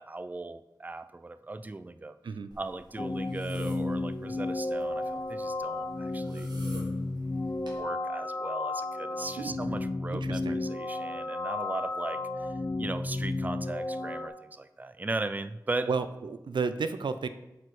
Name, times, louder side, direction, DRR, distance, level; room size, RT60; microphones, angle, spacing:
voice 1, 0.0-2.2 2.6-6.5 7.6-12.5 12.8-15.9, right 2 dB, 20° right, 12 dB, 0.4 m, -38 dB
sound 1, 2.5-7.8, right 1 dB, 70° right, 1.8 m, -50 dB
sound 2, 3.0-14.3, left 2 dB, 40° left, 0.6 m, -33 dB
voice 2, 10.1-10.6 15.9-17.3, right 5 dB, 85° right, 11 dB, 0.4 m, -32 dB
8.3 x 4.4 x 4.8 m, 0.95 s
wide cardioid pair, 70°, 8 cm